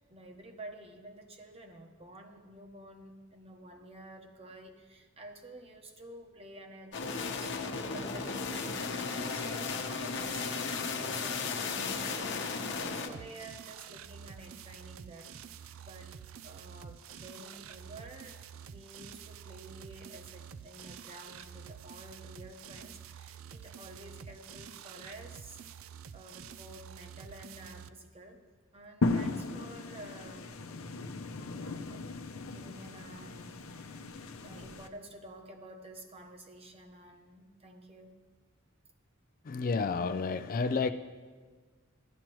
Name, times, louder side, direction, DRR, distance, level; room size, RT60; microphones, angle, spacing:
voice 1, 0.1-7.6 7.9-15.3 15.8-16.1 16.4-25.6 26.1-28.4 28.7-30.6 31.6-32.1 32.4-34.0 34.4-38.1, right 1 dB, 30° right, 3 dB, 1.1 m, -50 dB
sound 1, 6.9-13.1, left 4 dB, 60° left, 1.0 m, -35 dB
sound 2, 13.1-27.9, right 8 dB, 75° right, 0.4 m, -48 dB
sound 3, 29.0-34.9, left 3 dB, 85° left, 0.7 m, -36 dB
voice 2, 39.5-40.9, left 4 dB, 45° left, 10 dB, 0.4 m, -30 dB
15.5 x 11.5 x 3.1 m, 1.4 s
head